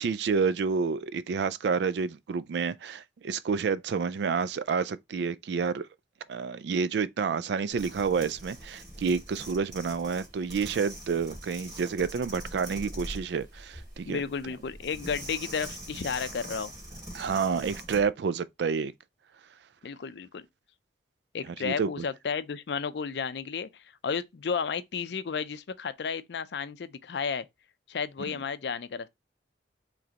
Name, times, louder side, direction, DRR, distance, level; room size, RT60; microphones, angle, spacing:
voice 1, 0.0-5.9 6.3-14.2 17.1-18.9 21.6-21.9 28.3-28.4, right 5 dB, 65° right, 0.3 m, -29 dB
sound 1, 7.7-18.1, right 1 dB, 25° right, 2.4 m, -43 dB
voice 2, 14.0-16.7 19.8-20.4 21.3-27.5 27.9-29.1, left 6 dB, 65° left, 0.4 m, -33 dB
4.9 x 3.3 x 2.8 m
head